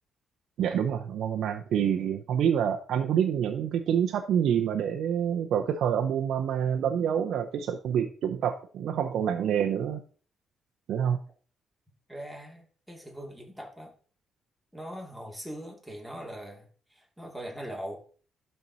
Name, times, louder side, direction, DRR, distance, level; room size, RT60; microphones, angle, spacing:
voice 1, 0.6-10.0 10.9-11.2, right 8 dB, 75° right, 4 dB, 0.7 m, -27 dB
voice 2, 12.1-13.9 14.7-18.0, equal, ahead, 0 dB, 2.6 m, -41 dB
12.0 x 4.5 x 4.1 m, 0.42 s
cardioid pair, 90°, 0 cm